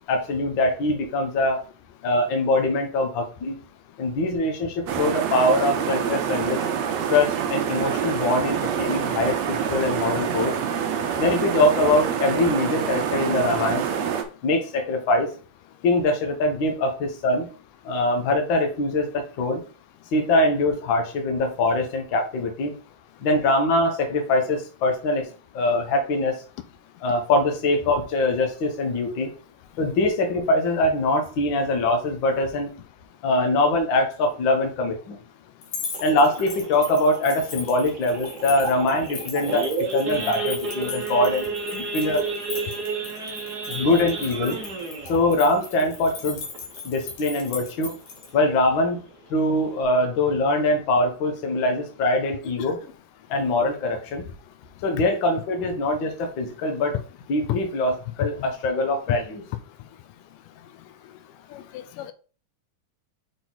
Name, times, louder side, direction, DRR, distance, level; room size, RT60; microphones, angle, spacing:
voice 1, 0.1-1.6 2.0-3.6 4.0-6.6 7.1-10.5 11.2-13.8 14.4-15.3 15.8-17.5 17.8-19.6 20.1-22.8 23.2-25.3 25.5-26.4 27.0-29.3 29.8-32.7 33.2-35.2 36.0-41.4 41.7-42.2 43.7-44.6 45.1-46.4 46.8-48.0 48.3-49.0 49.3-52.8 53.3-54.3 54.8-56.9 57.3-59.4, left 2 dB, 50° left, 3 dB, 1.5 m, -23 dB
sound 1, 4.9-14.2, right 8 dB, 70° right, 1.7 m, -26 dB
sound 2, 35.6-48.3, left 5 dB, 65° left, 2.8 m, -38 dB
Idling / Accelerating revving vroom / Sawing, 35.9-47.0 47.4-47.6 47.9-48.0 48.4-48.7 49.2-49.3 49.5-49.8, right 3 dB, 90° right, 0.8 m, -32 dB
voice 2, 61.5-62.1, left 13 dB, 90° left, 11 dB, 2.3 m, -36 dB
6.0 x 4.7 x 4.1 m, 0.37 s
omnidirectional pair, 3.7 m